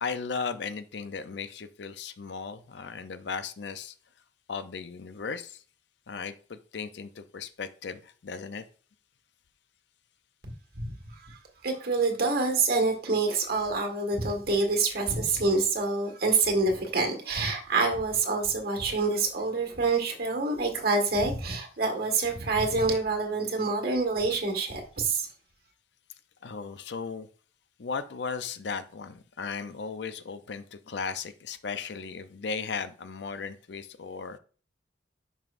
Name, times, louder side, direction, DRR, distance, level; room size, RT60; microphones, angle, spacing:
voice 1, 0.0-3.9 4.5-5.6 6.1-8.6 26.4-27.3 27.8-34.4, left 5 dB, 70° left, 12 dB, 0.5 m, -36 dB
voice 2, 10.8-25.3, right 3 dB, 55° right, 3 dB, 1.7 m, -27 dB
10.5 x 5.5 x 2.5 m, 0.40 s
head